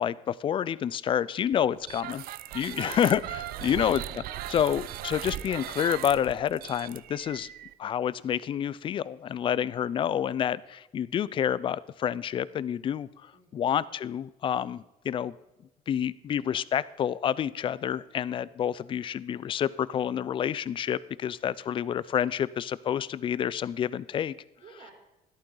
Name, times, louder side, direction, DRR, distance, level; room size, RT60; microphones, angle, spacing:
voice 1, 0.0-2.2 2.5-4.0 4.5-7.5 7.8-15.3 15.9-24.3, left 9 dB, 30° left, 19 dB, 0.4 m, -28 dB
sound 1, 1.8-7.7, right 13 dB, 70° right, 0.6 m, -38 dB
voice 2, 2.6-3.1 3.5-4.4 5.4-5.6 9.5-9.8 13.3-13.7 24.6-24.9, right 4 dB, 45° right, 0 dB, 3.6 m, -52 dB
14.0 x 13.0 x 3.8 m, 0.97 s
cardioid pair, 175°, 16 cm